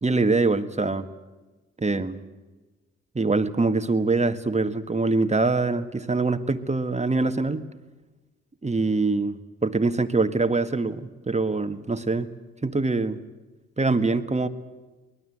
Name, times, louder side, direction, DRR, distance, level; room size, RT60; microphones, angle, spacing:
voice 1, 0.0-1.1 1.8-2.2 3.1-7.6 8.6-12.3 12.6-13.2 13.8-14.5, right 3 dB, 20° right, 10 dB, 1.8 m, -24 dB
23.5 x 20.0 x 8.0 m, 1.2 s
hypercardioid pair, 45°, 33 cm